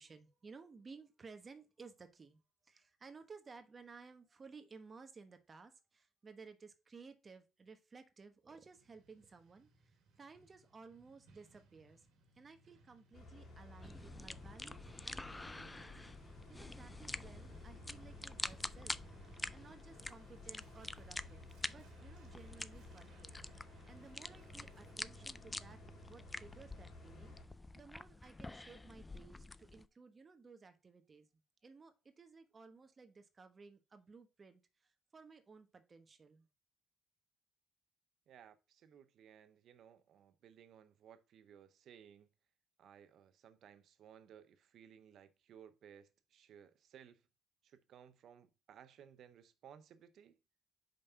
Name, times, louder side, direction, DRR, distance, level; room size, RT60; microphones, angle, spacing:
voice 1, 0.0-12.1 12.3-16.0 16.5-31.3 31.6-36.5, right 4 dB, 35° right, 1.1 m, -57 dB
Truck, 8.7-24.9, right 3 dB, 85° right, 1.6 m, -64 dB
sound 1, 13.1-27.4, left 2 dB, 60° left, 3.1 m, -56 dB
sound 2, 13.8-29.9, left 2 dB, 15° left, 0.3 m, -48 dB
voice 2, 38.3-42.3 42.8-47.2 47.6-50.4, right 8 dB, 70° right, 0.7 m, -60 dB
5.3 x 3.4 x 5.5 m
cardioid pair, 90°, 0 cm